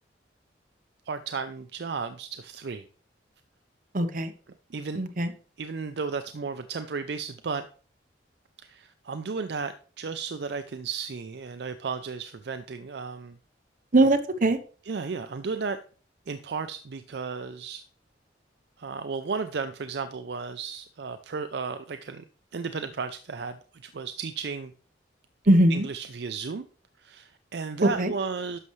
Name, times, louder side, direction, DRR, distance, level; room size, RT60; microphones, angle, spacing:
voice 1, 1.1-2.8 4.7-5.0 5.6-7.7 8.6-13.4 14.9-15.8 16.3-17.8 18.8-22.2 22.5-24.7 25.7-26.6 27.0-28.6, right 5 dB, 65° right, 0.5 m, -34 dB
voice 2, 3.9-4.3 5.0-5.3 13.9-14.6 25.5-25.8 27.8-28.1, right 1 dB, 45° right, 0.9 m, -21 dB
11.0 x 6.5 x 3.1 m
head